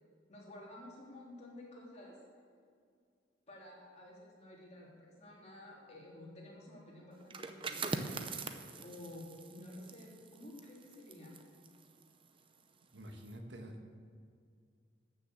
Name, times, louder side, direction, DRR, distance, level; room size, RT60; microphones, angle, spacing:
voice 1, 0.3-2.2 3.5-11.3, left 1 dB, 40° left, -4 dB, 3.1 m, -52 dB
sound 1, 7.2-12.7 13.1-13.3, right 4 dB, 30° right, 0.7 m, -43 dB
voice 2, 12.9-13.9, equal, 70° right, 3 dB, 1.5 m, -48 dB
13.5 x 6.6 x 7.4 m, 2.2 s
head